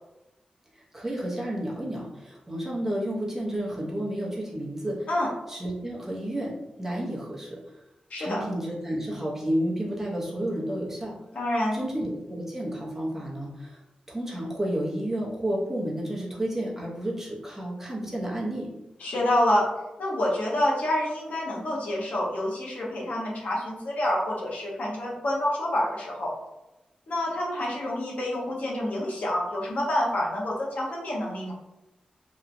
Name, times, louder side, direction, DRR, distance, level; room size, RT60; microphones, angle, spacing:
voice 1, 0.9-5.1 5.5-7.6 8.2-11.2 11.7-13.8 14.1-18.7, right 1 dB, 15° right, -4 dB, 0.7 m, -31 dB
voice 2, 8.1-8.4 11.3-11.8 19.0-19.7 20.0-26.3 27.1-31.5, left 1 dB, 80° left, -4 dB, 0.8 m, -27 dB
2.9 x 2.2 x 2.5 m, 0.95 s
wide cardioid pair, 110°, 3 cm